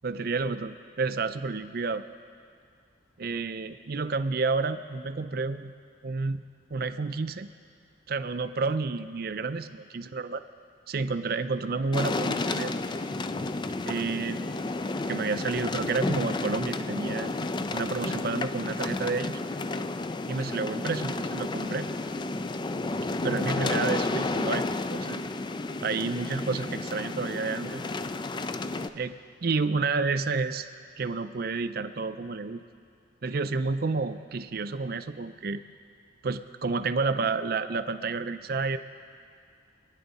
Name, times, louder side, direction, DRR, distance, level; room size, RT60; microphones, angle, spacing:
voice 1, 0.0-2.0 3.2-5.7 6.0-6.4 6.7-7.5 8.1-10.4 10.9-12.8 13.9-14.6 15.1-17.3 17.7-19.4 20.3-21.9 23.2-25.2 25.8-27.8 28.9-29.1 29.4-30.7 31.0-32.6 33.2-35.6 36.2-38.8, right 4 dB, 50° right, 10 dB, 0.5 m, -30 dB
sound 1, 11.9-28.9, left 2 dB, 25° left, 0.3 m, -31 dB
26.0 x 9.9 x 4.2 m, 2.3 s
head